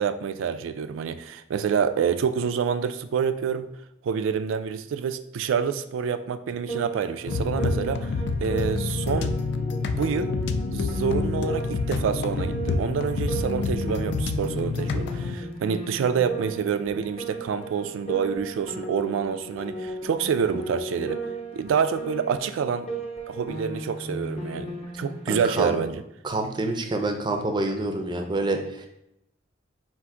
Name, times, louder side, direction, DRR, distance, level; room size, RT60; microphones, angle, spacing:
voice 1, 0.0-3.7 4.0-8.1 8.4-9.3 9.9-10.3 10.7-21.2 21.5-22.9 23.3-26.0, right 7 dB, 90° right, 11 dB, 0.3 m, -27 dB
Piano, 6.7-25.9, right 2 dB, 30° left, 0.7 m, -36 dB
sound 1, 7.3-15.4, left 4 dB, 60° left, 0.3 m, -28 dB
voice 2, 25.3-25.7 26.2-28.9, right 2 dB, 25° right, 5 dB, 0.4 m, -27 dB
4.5 x 2.5 x 3.6 m, 0.82 s
head